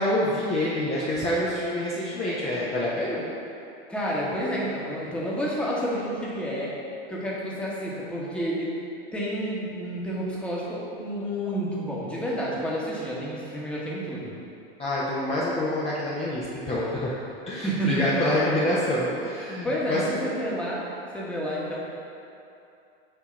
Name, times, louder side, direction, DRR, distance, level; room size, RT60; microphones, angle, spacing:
voice 1, 0.0-3.2 14.8-17.2 17.5-20.0, left 1 dB, 20° left, -8 dB, 1.0 m, -26 dB
voice 2, 3.9-6.7 7.1-8.8 9.1-14.3 17.6-18.1 19.6-20.9 21.1-21.8, equal, 5° left, -6 dB, 1.4 m, -29 dB
7.6 x 2.8 x 5.8 m, 2.7 s
hypercardioid pair, 110°, 31 cm